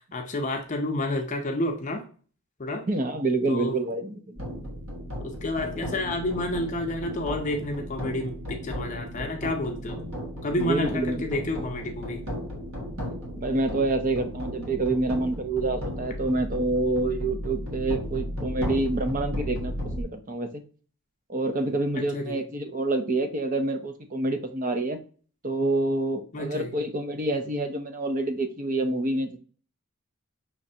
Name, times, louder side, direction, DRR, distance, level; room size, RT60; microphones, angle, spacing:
voice 1, 0.1-2.0 2.6-2.8 3.5-3.7 5.2-10.0 10.4-12.2 22.1-22.4 26.3-26.7, left 1 dB, 35° left, 3 dB, 0.6 m, -30 dB
voice 2, 2.9-4.4 10.6-11.2 13.4-20.6 21.3-25.0 25.4-29.4, right 2 dB, 40° right, 7 dB, 0.6 m, -27 dB
sound 1, 4.4-20.0, equal, 70° right, 1.4 m, -35 dB
5.8 x 3.2 x 2.7 m, 0.41 s
head